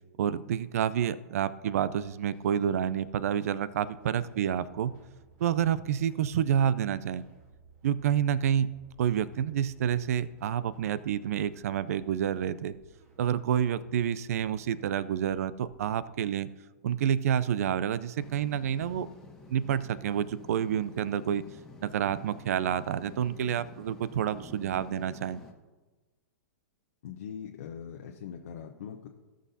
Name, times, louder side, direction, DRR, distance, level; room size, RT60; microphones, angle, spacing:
voice 1, 0.2-4.9 5.4-7.3 7.8-8.7 9.0-12.8 13.2-16.5 16.8-19.1 19.5-21.4 21.8-25.4, right 9 dB, 65° right, 18 dB, 0.5 m, -28 dB
sound 1, 1.7-16.2, right 3 dB, 45° right, 3.2 m, -59 dB
sound 2, 18.2-25.5, left 2 dB, 5° left, 1.5 m, -50 dB
voice 2, 27.0-29.1, left 8 dB, 65° left, 2 dB, 0.9 m, -41 dB
16.5 x 6.3 x 2.8 m, 1.2 s
hypercardioid pair, 115°, 9 cm